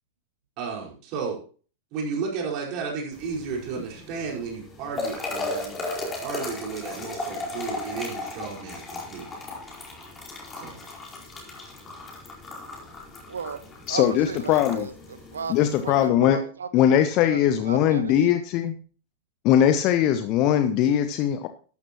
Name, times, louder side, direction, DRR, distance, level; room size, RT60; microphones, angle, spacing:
voice 1, 0.6-1.4 1.9-5.8 6.2-9.4 10.6-10.8, right 5 dB, 40° right, -2 dB, 4.9 m, -33 dB
sound 1, 3.1-16.1, left 2 dB, 20° left, 4.6 m, -36 dB
voice 2, 13.3-13.6 13.9-16.7 17.2-18.3, right 6 dB, 70° right, 12 dB, 1.3 m, -35 dB
voice 3, 13.9-14.9 15.5-16.4 16.7-18.7 19.4-21.5, left 10 dB, 40° left, 10 dB, 0.9 m, -20 dB
13.0 x 12.5 x 3.0 m, 0.40 s
figure-of-eight pair, 90°, 0 cm